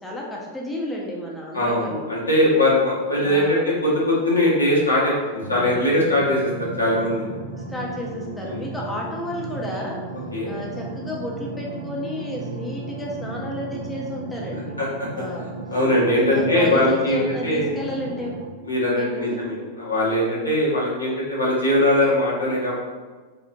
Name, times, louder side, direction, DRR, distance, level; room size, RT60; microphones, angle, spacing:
voice 1, 0.0-2.1 3.2-3.7 7.7-10.0 10.4-14.8 15.1-15.5 16.3-18.4 19.0-19.4, left 1 dB, 10° left, -3 dB, 0.5 m, -32 dB
voice 2, 1.5-7.2 8.4-8.6 10.3-10.5 14.8-15.1 15.7-17.7 18.6-22.8, left 1 dB, 80° left, -6 dB, 0.8 m, -21 dB
sound 1, 5.4-18.5, right 3 dB, 65° right, 0.3 m, -35 dB
3.7 x 2.1 x 2.6 m, 1.3 s
figure-of-eight pair, 90°, 0 cm